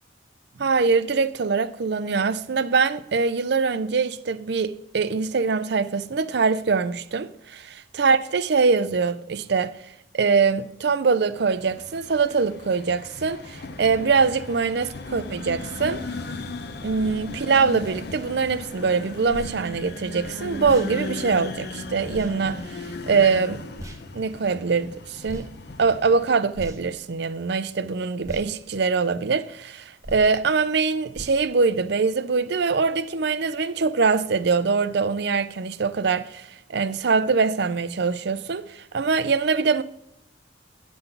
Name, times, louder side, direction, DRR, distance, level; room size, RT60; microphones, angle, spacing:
voice 1, 0.6-9.7 10.1-16.0 16.8-23.6 24.1-25.5 25.8-39.8, right 4 dB, 60° right, 0.5 m, -23 dB
sound 1, 11.4-26.2, left 2 dB, 60° left, 0.7 m, -37 dB
sound 2, 19.3-19.5 20.6-20.9 22.1-22.3 23.8-24.0 25.2-25.5 26.5-27.0 28.2-28.5 30.0-30.3 31.1-31.4, equal, 15° right, 0.7 m, -38 dB
10.0 x 3.9 x 6.9 m
head